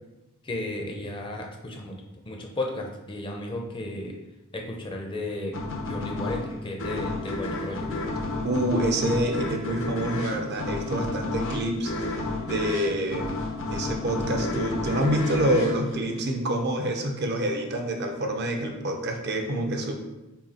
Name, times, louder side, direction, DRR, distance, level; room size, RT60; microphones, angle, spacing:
voice 1, 0.4-4.1 4.5-5.6 5.9-7.9, left 1 dB, 25° left, 1 dB, 0.5 m, -34 dB
sound 1, 5.5-16.8, left 2 dB, 65° left, 0.7 m, -31 dB
voice 2, 8.4-12.1 12.5-13.4 13.7-20.0, right 1 dB, 50° right, 3 dB, 0.6 m, -27 dB
5.6 x 2.3 x 4.2 m, 1.0 s
head